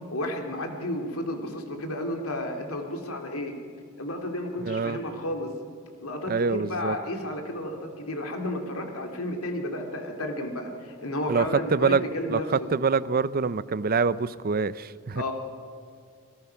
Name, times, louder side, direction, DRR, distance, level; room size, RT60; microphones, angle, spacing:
voice 1, 0.1-3.5 4.0-5.5 6.0-12.7 15.2-15.3, left 1 dB, 75° left, 2.7 m, -32 dB
voice 2, 4.6-5.0 6.3-7.0 11.3-15.3, right 4 dB, 40° right, 0.6 m, -26 dB
28.0 x 18.0 x 5.8 m
head